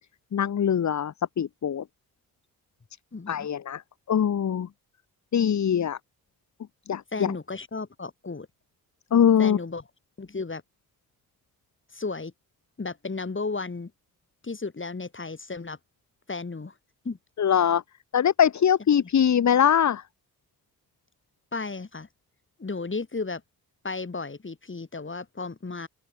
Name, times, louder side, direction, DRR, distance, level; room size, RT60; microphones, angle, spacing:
voice 1, 0.3-1.8 3.3-3.8 4.1-4.7 5.3-6.0 6.9-7.3 9.1-9.6 17.4-17.8 18.1-20.0, left 8 dB, 50° left, 1.2 m, -22 dB
voice 2, 3.1-3.5 7.1-8.5 9.4-9.8 10.2-10.6 11.9-12.3 12.8-13.9 14.4-15.8 16.3-16.7 17.0-17.2 19.0-19.1 21.5-22.1 22.6-23.4 23.8-25.9, left 3 dB, 30° left, 7.1 m, -34 dB
open air
supercardioid pair, 55°, 37 cm